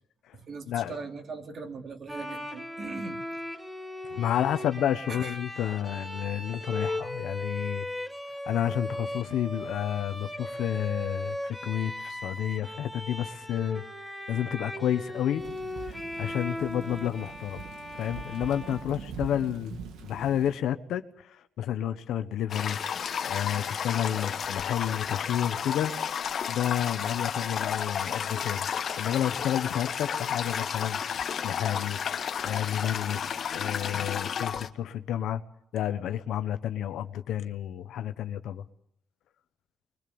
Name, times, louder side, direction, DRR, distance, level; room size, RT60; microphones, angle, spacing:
voice 1, 0.3-3.2 5.1-5.4, right 4 dB, 50° right, 2.9 m, -40 dB
Bowed string instrument, 2.1-19.5, left 1 dB, 5° right, 2.0 m, -38 dB
voice 2, 4.1-7.8 8.4-13.8 14.3-15.4 16.2-17.6 18.0-28.7 29.0-32.0 32.4-35.4 35.7-38.6, left 10 dB, 80° left, 1.2 m, -30 dB
Thunder / Rain, 15.4-20.6, right 6 dB, 85° right, 1.9 m, -43 dB
Toilet flush, 22.5-34.7, left 7 dB, 55° left, 1.3 m, -32 dB
22.5 x 21.5 x 7.1 m
cardioid pair, 90°, 0 cm